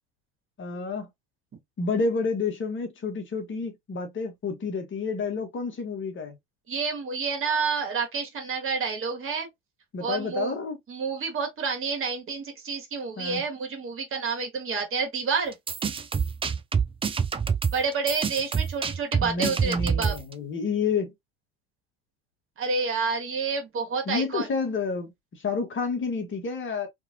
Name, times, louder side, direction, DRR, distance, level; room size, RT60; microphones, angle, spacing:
voice 1, 0.6-1.1 1.8-6.4 9.9-10.8 13.2-13.4 19.2-21.1 24.1-25.1 25.4-26.9, left 4 dB, 40° left, 1.1 m, -29 dB
voice 2, 6.7-9.5 10.0-10.6 10.9-15.6 17.7-20.1 22.6-24.5, right 5 dB, 40° right, 1.5 m, -29 dB
sound 1, 15.5-20.3, right 6 dB, 20° right, 0.4 m, -26 dB
2.9 x 2.6 x 2.7 m
hypercardioid pair, 75°, 31 cm